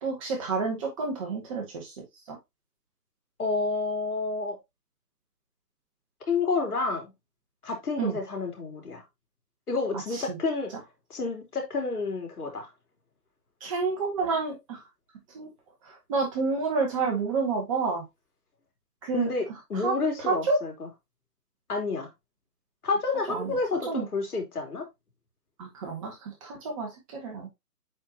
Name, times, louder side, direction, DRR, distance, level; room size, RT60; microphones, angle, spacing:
voice 1, 0.0-1.9 2.3-2.4 8.0-8.2 10.1-10.4 13.6-14.8 15.3-15.5 15.8-18.0 19.0-19.3 19.7-19.9 20.3-20.6 23.3-23.6 23.9-24.0 25.6-27.5, right 4 dB, 20° right, 1 dB, 1.6 m, -29 dB
voice 2, 3.4-4.6 6.3-7.1 7.6-9.0 9.7-10.7 11.1-12.7 19.1-19.4 19.7-20.9 21.7-22.1 22.8-24.8, left 3 dB, 65° left, 2 dB, 3.4 m, -29 dB
8.6 x 4.6 x 2.8 m, 0.20 s
figure-of-eight pair, 155°, 48 cm